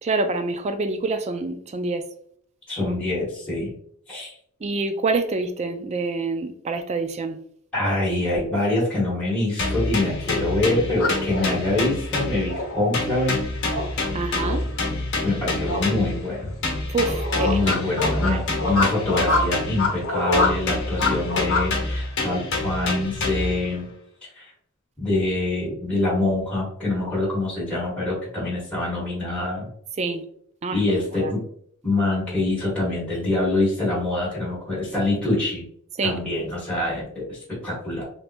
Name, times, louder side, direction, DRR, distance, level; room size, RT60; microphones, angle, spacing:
voice 1, 0.0-2.0 2.8-3.0 4.6-7.4 14.1-14.7 16.9-17.7 18.2-18.4 30.0-30.2 30.6-30.8 31.1-31.3 36.0-36.2, right 3 dB, 30° right, 8 dB, 0.3 m, -26 dB
voice 2, 2.7-3.7 4.1-4.3 7.7-13.4 15.2-16.4 17.4-23.9 24.3-24.5 25.0-29.7 30.7-31.4 31.8-35.6 36.0-38.0, left 2 dB, 5° left, -8 dB, 1.3 m, -25 dB
sound 1, 9.6-12.7 12.9-16.2 16.6-20.0 20.3-23.6, left 2 dB, 55° left, 1.1 m, -27 dB
sound 2, 10.9-21.7, left 2 dB, 75° left, 1.1 m, -26 dB
3.4 x 2.8 x 2.5 m, 0.65 s
head